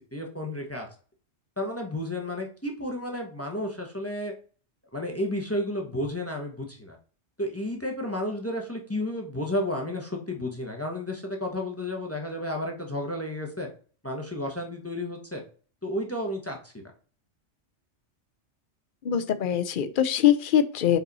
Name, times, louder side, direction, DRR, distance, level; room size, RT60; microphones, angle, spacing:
voice 1, 0.1-0.9 1.6-4.3 4.9-7.0 7.4-13.7 14.0-15.4 15.8-16.7, left 1 dB, 10° left, 1 dB, 1.0 m, -32 dB
voice 2, 19.0-21.0, left 10 dB, 50° left, 12 dB, 0.7 m, -23 dB
5.4 x 4.8 x 4.1 m, 0.41 s
omnidirectional pair, 1.3 m